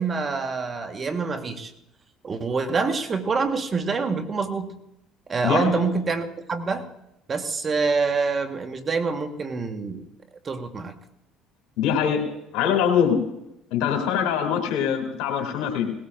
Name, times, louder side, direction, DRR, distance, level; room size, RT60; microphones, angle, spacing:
voice 1, 0.0-1.7 2.2-4.7 5.3-6.9 7.3-10.0 10.4-11.0, right 4 dB, 35° right, 7 dB, 1.4 m, -26 dB
voice 2, 5.4-5.8 11.8-12.3 12.5-13.2 13.7-15.9, left 8 dB, 75° left, 3 dB, 2.7 m, -23 dB
19.0 x 17.0 x 2.5 m, 0.85 s
supercardioid pair, 75°, 0 cm